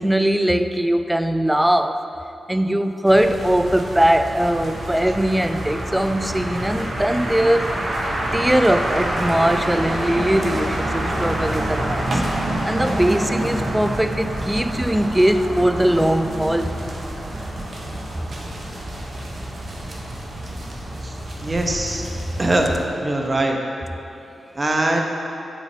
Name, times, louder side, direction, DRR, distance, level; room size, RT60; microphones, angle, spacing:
voice 1, 0.0-2.0 2.5-7.7 8.3-12.2 12.7-16.8, right 1 dB, 10° right, 9 dB, 0.4 m, -20 dB
sound 1, 3.1-22.9, right 1 dB, 60° right, 0.9 m, -27 dB
voice 2, 21.4-22.0 22.4-22.7 23.0-23.6 24.5-25.0, right 1 dB, 35° right, 1 dB, 0.9 m, -21 dB
10.0 x 4.0 x 3.3 m, 2.8 s
cardioid pair, 50°, 0 cm